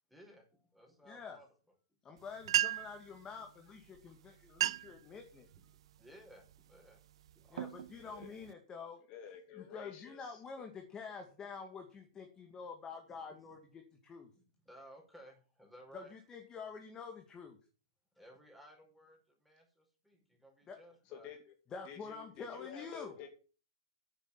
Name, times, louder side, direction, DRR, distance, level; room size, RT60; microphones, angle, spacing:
voice 1, 0.1-1.5 3.1-3.5 4.0-4.2 4.6-5.1 5.5-7.7 12.3-12.5 13.1-13.6 14.6-16.1 18.2-19.2 19.4-21.3, equal, ahead, 0 dB, 5.4 m, -59 dB
voice 2, 1.0-1.4 2.0-5.5 7.5-9.0 9.6-14.3 15.9-17.6 20.7-20.8 21.7-23.1, left 5 dB, 20° left, 4 dB, 2.2 m, -47 dB
sound 1, 2.2-2.3 2.4-3.1 3.9-4.1 4.4-5.0 5.5-5.9 6.5-6.8 7.3-8.5, right 12 dB, 70° right, 0.5 m, -34 dB
voice 3, 8.0-8.3 9.1-10.6 21.1-21.5 21.8-23.3, left 9 dB, 40° left, 4 dB, 2.4 m, -50 dB
10.5 x 8.1 x 7.4 m, 0.37 s
hypercardioid pair, 135°, 3 cm